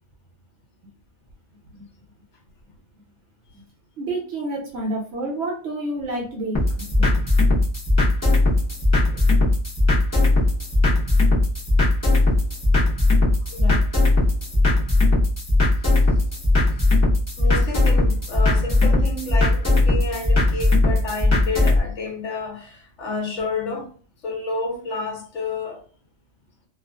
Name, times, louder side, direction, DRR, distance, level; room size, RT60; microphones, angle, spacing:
voice 1, 4.0-7.1, right 1 dB, 60° right, 0.8 m, -29 dB
sound 1, 6.5-21.8, left 2 dB, 20° left, 0.4 m, -19 dB
voice 2, 13.5-13.9 16.5-16.7 17.4-23.9 24.2-25.8, left 3 dB, 65° left, 0.8 m, -30 dB
2.3 x 2.3 x 2.2 m
omnidirectional pair, 1.4 m